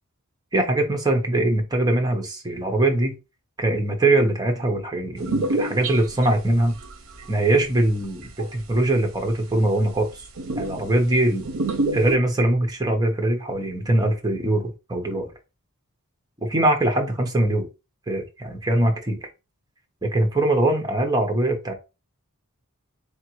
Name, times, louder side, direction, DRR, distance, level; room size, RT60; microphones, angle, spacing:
voice 1, 0.5-3.2 3.6-6.8 7.3-10.1 10.6-11.5 11.9-15.3 16.4-17.7 18.1-19.3 20.0-21.7, right 1 dB, 20° right, 0.9 m, -22 dB
sound 1, 5.2-6.9 7.2-8.5 9.2-9.3 9.6-9.7 9.9-10.0 10.4-11.0 11.5-12.2, right 2 dB, 65° right, 0.6 m, -27 dB
3.6 x 3.6 x 3.1 m
head